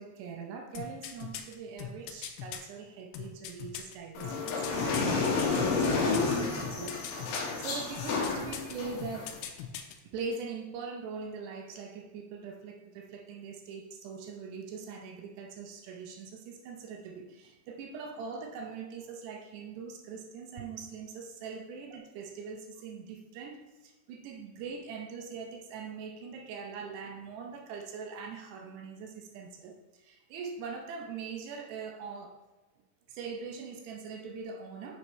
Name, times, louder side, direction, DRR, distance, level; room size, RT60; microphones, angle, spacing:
voice 1, 0.0-9.3 10.0-32.4 33.1-35.0, right 5 dB, 75° right, 2 dB, 2.6 m, -42 dB
sound 1, 0.8-2.6 3.1-6.4 6.6-7.5 8.0-8.7 9.0-10.0 10.3-10.4, left 10 dB, 85° left, 3.0 m, -40 dB
sound 2, 4.1-9.4, left 4 dB, 70° left, 3.2 m, -30 dB
9.7 x 6.0 x 3.2 m, 1.2 s
omnidirectional pair, 5.4 m